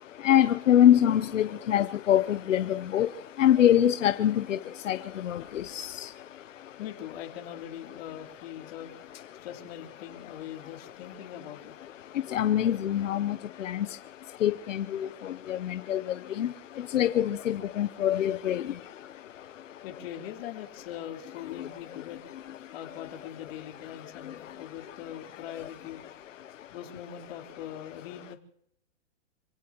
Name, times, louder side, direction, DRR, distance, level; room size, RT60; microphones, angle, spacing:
voice 1, 0.2-3.1 3.4-4.6 4.9-5.0 5.2-5.4 5.7-5.9 12.3-13.9 14.4-15.1 15.5-16.0 16.4-16.5 16.9-18.6, left 11 dB, 90° left, 0.8 m, -24 dB
voice 2, 6.8-11.7 19.8-22.2 22.7-26.0 26.7-28.4, left 10 dB, 50° left, 3.3 m, -42 dB
27.5 x 17.0 x 3.0 m
hypercardioid pair, 145°, 37 cm